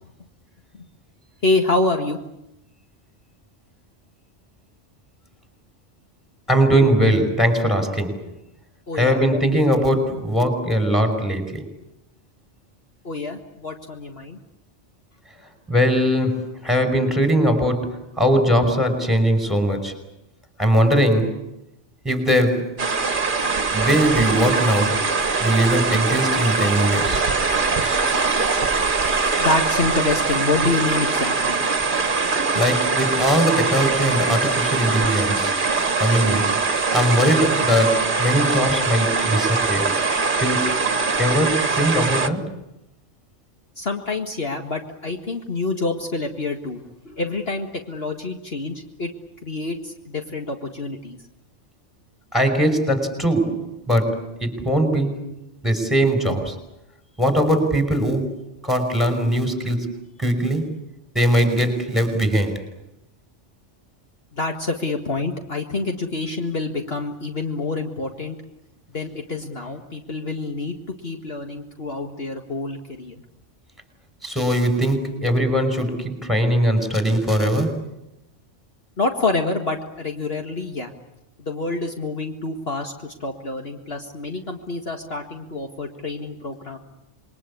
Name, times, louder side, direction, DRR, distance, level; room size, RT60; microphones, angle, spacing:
voice 1, 1.4-2.2 8.9-9.4 13.0-14.4 29.4-31.6 43.8-46.8 47.1-49.1 49.4-51.2 64.3-68.4 68.9-70.7 71.0-73.2 79.0-80.9 81.4-86.8, left 3 dB, 55° left, 3 dB, 2.1 m, -27 dB
voice 2, 6.5-8.2 8.9-11.7 15.7-20.0 20.6-21.4 22.0-22.8 23.7-25.1 25.4-27.2 32.5-35.5 36.0-36.6 36.9-39.9 40.4-40.8 41.2-42.5 52.3-55.3 55.6-56.6 57.2-59.9 60.2-60.7 61.1-62.6 74.2-77.9, equal, ahead, 6 dB, 5.5 m, -20 dB
sound 1, 22.8-42.3, right 4 dB, 45° right, 1.6 m, -22 dB
27.5 x 22.5 x 8.6 m, 0.86 s
omnidirectional pair, 1.3 m